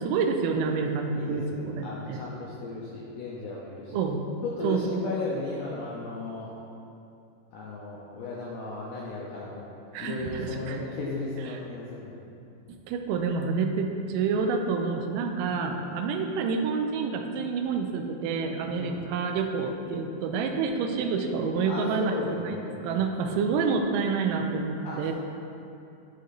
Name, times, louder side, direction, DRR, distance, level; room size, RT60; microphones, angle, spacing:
voice 1, 0.0-2.2 3.9-4.2 4.6-5.3 9.9-10.8 12.7-22.6 22.8-25.1, right 5 dB, 85° right, 3 dB, 1.9 m, -28 dB
voice 2, 1.1-4.0 4.4-6.5 7.5-9.7 10.0-12.2 15.5-15.8 18.7-19.0 21.7-23.4 24.8-25.1, left 2 dB, 85° left, -5 dB, 1.9 m, -35 dB
11.5 x 4.1 x 2.5 m, 2.7 s
omnidirectional pair, 4.4 m